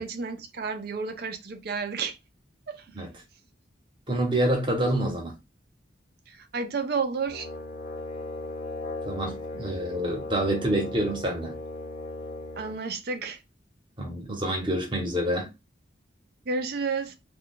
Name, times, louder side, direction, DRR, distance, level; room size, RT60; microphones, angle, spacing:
voice 1, 0.0-2.2 2.7-3.1 6.3-7.5 12.6-13.4 16.5-17.1, right 4 dB, 50° right, 0.5 m, -31 dB
voice 2, 4.1-5.4 9.0-11.6 14.0-15.5, right 1 dB, 25° right, 0.9 m, -27 dB
Brass instrument, 7.3-12.8, left 2 dB, 50° left, 0.6 m, -37 dB
2.3 x 2.2 x 3.7 m
head